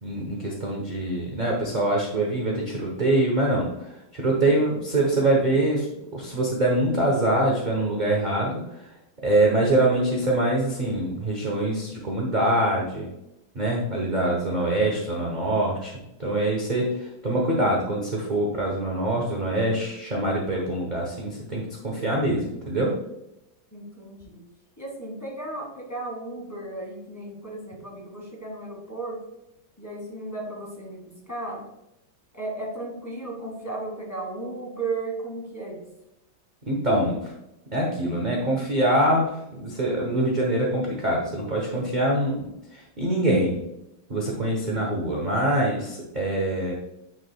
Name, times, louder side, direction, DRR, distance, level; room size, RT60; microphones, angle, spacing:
voice 1, 0.0-3.7 4.1-5.9 6.1-8.6 9.2-13.1 13.5-15.9 16.2-23.0 36.7-37.3 37.7-39.3 39.5-43.6 44.1-46.7, right 1 dB, 30° right, -2 dB, 0.8 m, -24 dB
voice 2, 23.7-24.4 24.8-29.2 29.8-31.0 31.3-31.6 32.3-35.8, right 2 dB, 10° left, -4 dB, 1.9 m, -35 dB
9.6 x 4.9 x 2.3 m, 0.87 s
omnidirectional pair, 2.2 m